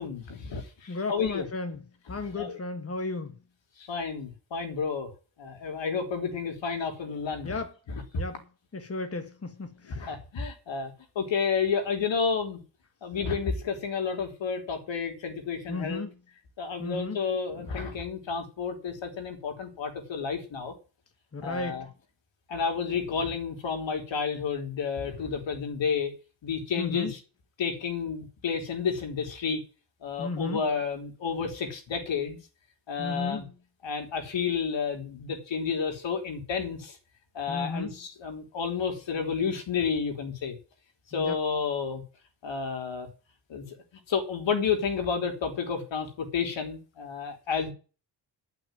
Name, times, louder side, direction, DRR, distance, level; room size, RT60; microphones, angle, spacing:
voice 1, 0.0-1.5 2.4-2.6 3.8-5.1 5.4-7.6 7.9-8.2 9.8-12.6 13.0-16.0 16.6-20.7 21.4-21.9 22.5-26.1 26.4-27.2 27.6-29.6 30.0-32.4 32.9-33.4 33.8-37.0 37.3-40.6 41.1-42.0 42.4-43.1 43.5-43.7 44.1-47.7, left 6 dB, 75° left, 3.5 m, -31 dB
voice 2, 0.9-1.8 2.1-3.4 7.4-7.8 8.2-8.4 8.7-10.1 15.7-16.1 16.8-17.2 21.3-21.9 26.8-27.1 30.2-30.6 33.0-33.5 37.5-38.0 41.1-41.4, left 3 dB, 30° left, 1.9 m, -34 dB
11.0 x 6.1 x 9.0 m
cardioid pair, 80°, 44 cm